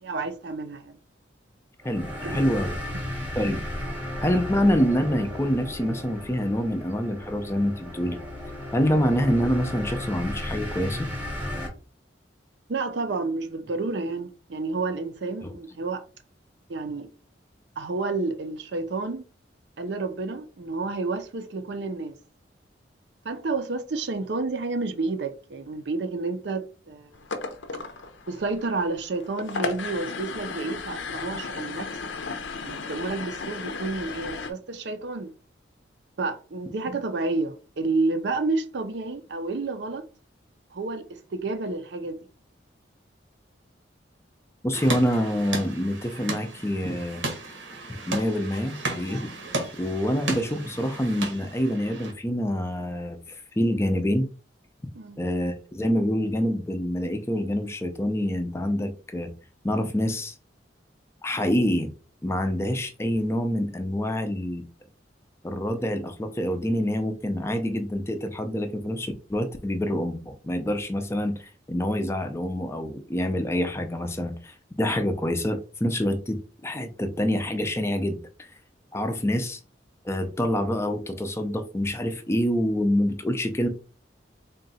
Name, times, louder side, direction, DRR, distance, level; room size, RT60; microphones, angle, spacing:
voice 1, 0.0-1.0 2.2-2.4 2.9-3.1 12.7-16.0 16.7-17.1 17.8-19.3 19.8-22.2 23.2-27.1 28.3-32.0 32.6-35.3 36.2-40.1 40.7-42.2 49.9-50.0 54.9-55.2, right 3 dB, 65° right, 0.5 m, -30 dB
voice 2, 1.8-2.7 3.4-3.6 4.2-8.2 8.7-11.1 15.4-15.5 44.6-47.2 48.1-49.3 49.8-54.3 55.2-59.3 59.6-60.4 61.2-61.9 62.2-64.6 65.4-78.5 78.9-79.6 80.0-83.7, equal, 15° left, 0.4 m, -26 dB
sound 1, 1.8-11.7, left 1 dB, 10° right, 0.9 m, -34 dB
sound 2, 27.1-34.5, left 4 dB, 80° left, 0.6 m, -35 dB
sound 3, 44.7-52.1, right 2 dB, 90° right, 1.1 m, -34 dB
3.8 x 2.3 x 4.0 m
head